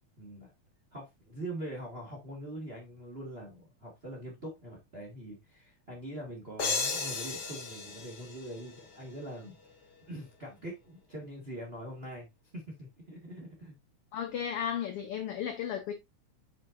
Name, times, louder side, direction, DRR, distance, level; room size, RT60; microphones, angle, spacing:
voice 1, 0.2-0.5 0.9-9.6 10.1-12.3 12.5-13.7, right 1 dB, 35° right, 1.0 m, -43 dB
sound 1, 6.6-9.3, left 4 dB, 40° left, 1.7 m, -35 dB
voice 2, 14.1-15.9, left 9 dB, 80° left, 1.3 m, -34 dB
7.4 x 5.2 x 2.5 m
omnidirectional pair, 3.5 m